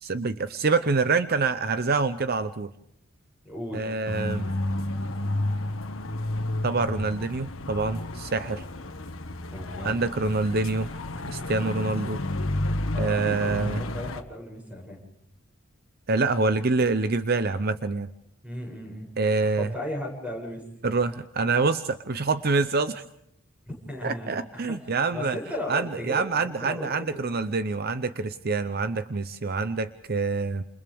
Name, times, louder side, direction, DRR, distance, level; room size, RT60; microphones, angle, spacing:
voice 1, 0.0-2.7 3.7-4.5 6.6-8.6 9.8-10.9 11.3-12.2 13.0-13.8 16.1-18.1 19.2-19.7 20.8-23.0 24.0-25.4 25.7-30.6, right 3 dB, 50° right, 11 dB, 0.7 m, -26 dB
voice 2, 3.4-3.9 9.5-10.0 12.9-13.6 13.9-15.0 18.4-19.1 19.5-20.6 23.7-27.3, left 1 dB, 5° right, 1 dB, 7.6 m, -36 dB
sound 1, 4.0-14.2, left 1 dB, 90° left, 1.7 m, -31 dB
30.0 x 28.5 x 3.6 m, 0.76 s
head